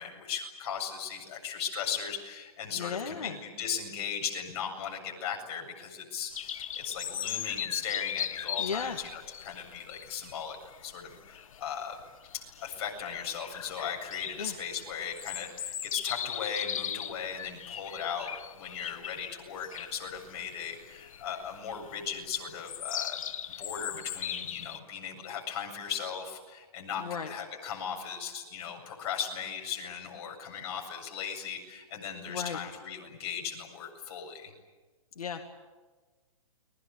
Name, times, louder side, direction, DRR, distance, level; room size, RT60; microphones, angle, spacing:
voice 1, 0.0-12.0 12.3-23.2 23.6-34.5, left 7 dB, 45° left, 2 dB, 7.8 m, -37 dB
voice 2, 2.7-3.4 8.6-9.0 14.4-14.6 27.0-27.3 32.3-32.6 35.2-35.5, left 6 dB, 85° left, 4 dB, 2.4 m, -35 dB
sound 1, 6.3-24.8, left 9 dB, 65° left, 1.3 m, -38 dB
30.0 x 22.5 x 8.6 m, 1.3 s
hypercardioid pair, 145°, 19 cm